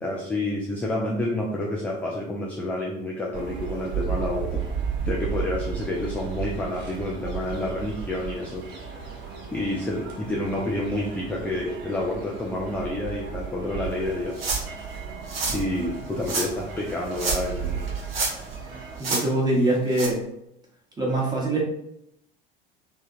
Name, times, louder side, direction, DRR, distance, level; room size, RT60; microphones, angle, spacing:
voice 1, 0.0-4.6 5.0-8.6 9.5-14.5 15.5-17.8, left 1 dB, 5° left, -3 dB, 0.3 m, -29 dB
sound 1, 3.3-19.0, right 7 dB, 40° right, 0.7 m, -34 dB
sound 2, 14.4-14.8 15.3-15.6 16.2-16.5 17.1-17.6 17.9-18.5 19.0-19.2 19.9-20.1, right 3 dB, 80° right, 0.6 m, -28 dB
voice 2, 19.0-20.2 21.0-21.6, right 1 dB, 15° right, -3 dB, 1.1 m, -23 dB
3.4 x 2.2 x 2.7 m, 0.78 s
figure-of-eight pair, 70°, 29 cm